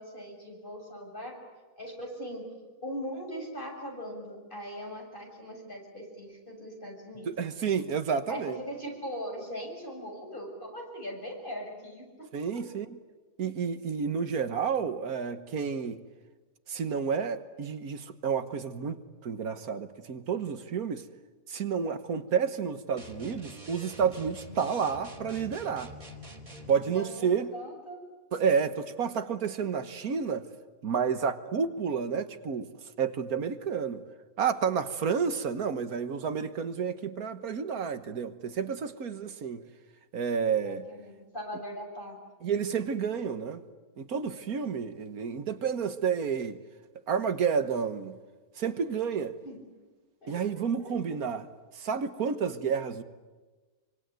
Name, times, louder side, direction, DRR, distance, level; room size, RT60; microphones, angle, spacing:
voice 1, 0.0-1.4 1.8-2.5 2.8-7.3 8.3-12.7 26.9-28.0 40.6-42.2 49.4-49.6 50.2-50.9, equal, 35° left, 7.2 m, -40 dB
voice 2, 7.3-8.6 12.3-13.0 13.4-16.0 16.7-19.0 19.2-21.0 21.5-25.9 26.7-27.5 28.3-30.4 30.8-32.7 33.0-34.0 34.4-39.6 40.1-40.9 42.4-43.6 44.0-46.6 47.1-48.2 48.6-49.4 50.3-51.5 51.8-53.0, right 6 dB, 85° right, 1.8 m, -30 dB
sound 1, 23.0-26.8, equal, 30° right, 3.0 m, -46 dB
26.0 x 25.0 x 9.3 m
omnidirectional pair, 1.5 m